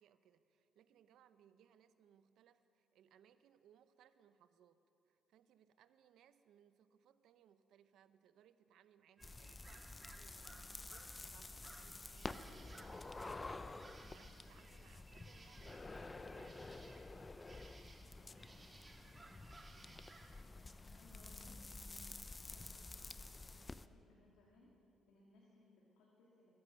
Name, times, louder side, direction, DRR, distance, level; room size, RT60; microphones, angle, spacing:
voice 1, 0.0-16.6, right 9 dB, 80° right, 12 dB, 0.7 m, -69 dB
sound 1, 9.2-23.9, left 3 dB, 25° left, 0.5 m, -51 dB
sound 2, 9.2-20.4, right 3 dB, 30° right, 1.8 m, -61 dB
voice 2, 18.0-19.5 20.5-24.7 25.1-26.5, left 2 dB, 90° left, -4 dB, 2.6 m, -69 dB
20.5 x 10.5 x 6.5 m, 2.7 s
cardioid pair, 90°, 0 cm